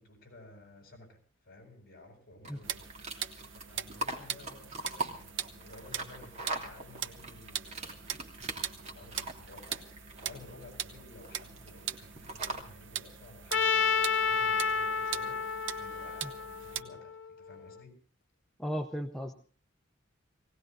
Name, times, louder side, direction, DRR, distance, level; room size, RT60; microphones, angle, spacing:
voice 1, 0.0-8.1 8.7-18.0, left 2 dB, 50° left, 4 dB, 7.8 m, -54 dB
sound 1, 2.4-12.6, right 2 dB, 35° right, 2.9 m, -42 dB
sound 2, 2.6-16.8, right 9 dB, 70° right, 1.0 m, -41 dB
Trumpet, 13.5-17.6, left 5 dB, 65° left, 0.8 m, -30 dB
voice 2, 18.6-19.3, equal, 5° left, 5 dB, 0.8 m, -35 dB
19.5 x 17.5 x 3.9 m, 0.42 s
head